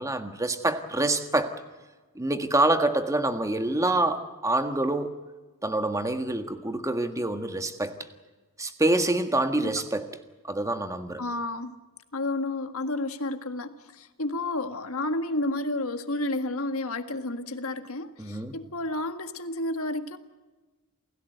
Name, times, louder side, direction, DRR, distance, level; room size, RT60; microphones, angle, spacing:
voice 1, 0.0-1.5 2.1-5.2 5.6-7.9 8.6-10.1 10.5-11.2 18.2-18.5, right 2 dB, 15° right, 1.6 m, -26 dB
voice 2, 11.2-11.7 12.1-20.2, left 2 dB, 70° left, 1.7 m, -31 dB
28.0 x 16.5 x 8.0 m
head